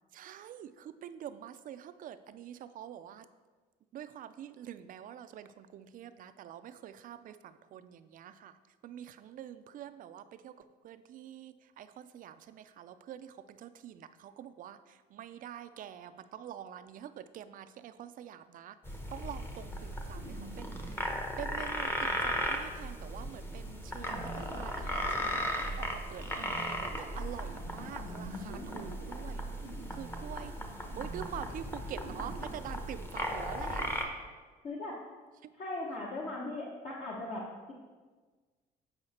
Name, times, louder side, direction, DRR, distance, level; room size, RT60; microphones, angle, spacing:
voice 1, 0.1-3.3 3.9-8.6 8.8-29.5 29.9-30.5 31.0-33.9 35.4-35.5, right 10 dB, 55° right, 12 dB, 0.4 m, -46 dB
sound 1, 18.9-34.0, equal, 15° left, 0.9 m, -37 dB
sound 2, 20.1-33.9, right 4 dB, 85° right, 1.0 m, -50 dB
voice 2, 27.8-28.9 34.6-35.0 35.6-37.7, left 2 dB, 45° left, -4 dB, 1.2 m, -40 dB
8.0 x 4.9 x 4.2 m, 1.4 s
cardioid pair, 110°, 17 cm